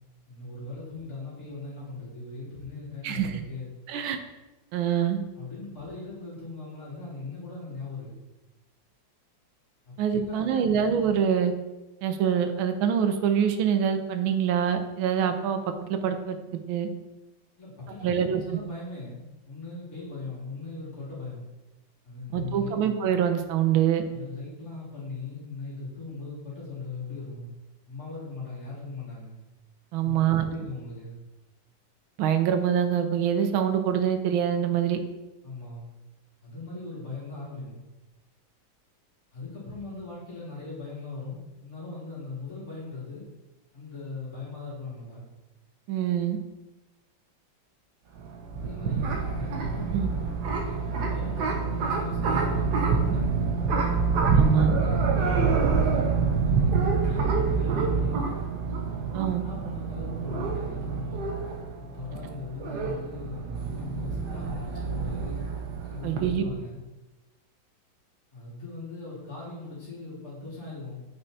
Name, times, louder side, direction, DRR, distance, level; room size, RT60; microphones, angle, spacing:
voice 1, 0.3-3.7 5.3-8.2 9.8-10.8 17.6-21.4 22.0-22.8 24.1-27.5 27.9-29.4 30.0-31.2 35.4-35.9 36.4-37.8 39.3-43.3 43.7-45.2 48.6-50.3 50.8-53.5 54.3-58.2 59.4-61.3 61.8-65.5 65.9-66.8 68.3-71.0, left 3 dB, 45° left, -8 dB, 3.1 m, -39 dB
voice 2, 3.0-3.4 3.9-4.2 4.7-5.2 10.0-11.5 12.0-15.6 15.9-16.9 18.0-18.4 22.3-24.0 29.9-30.4 32.2-35.0 45.9-46.4 49.9-50.1 54.3-54.7 59.1-59.4 66.0-66.4, right 8 dB, 85° right, 7 dB, 1.5 m, -25 dB
sound 1, 48.2-66.3, right 5 dB, 60° right, 1.3 m, -27 dB
8.9 x 5.4 x 2.7 m, 1.1 s
omnidirectional pair, 2.2 m